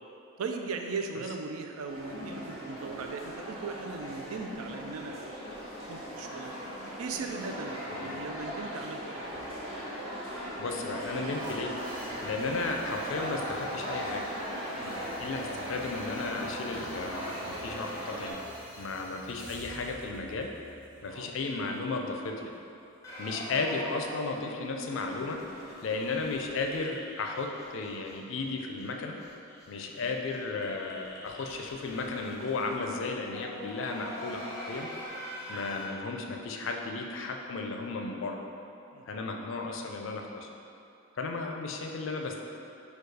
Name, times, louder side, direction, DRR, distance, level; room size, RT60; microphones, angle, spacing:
voice 1, 0.4-5.4 5.9-6.5 7.0-9.3 14.7-15.0 21.0-21.3 25.9-26.2 35.4-35.7 38.9-39.3, right 4 dB, 85° right, 4 dB, 0.4 m, -38 dB
sound 1, 1.9-18.3, equal, 30° right, 1.4 m, -38 dB
voice 2, 10.6-11.7 12.2-14.3 14.8-18.4 18.8-20.5 21.0-22.5 23.2-25.4 25.8-29.2 29.7-34.9 35.5-38.4 39.1-40.5 41.2-42.4, left 3 dB, 65° left, 2 dB, 0.4 m, -34 dB
sound 2, 11.3-23.3, equal, 65° right, 1.4 m, -51 dB
sound 3, 23.0-28.1 28.4-28.5 28.8-28.9 29.1-35.8, equal, 15° left, 0.7 m, -44 dB
4.6 x 2.3 x 4.7 m, 2.8 s
head